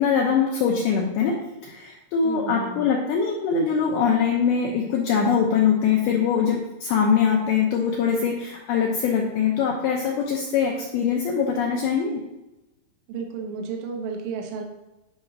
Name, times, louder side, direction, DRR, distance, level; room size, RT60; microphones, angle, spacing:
voice 1, 0.0-12.2, left 6 dB, 80° left, -1 dB, 2.3 m, -22 dB
voice 2, 2.2-2.8 13.1-14.6, right 5 dB, 75° right, 2 dB, 2.8 m, -32 dB
11.0 x 5.1 x 2.7 m, 0.96 s
omnidirectional pair, 5.3 m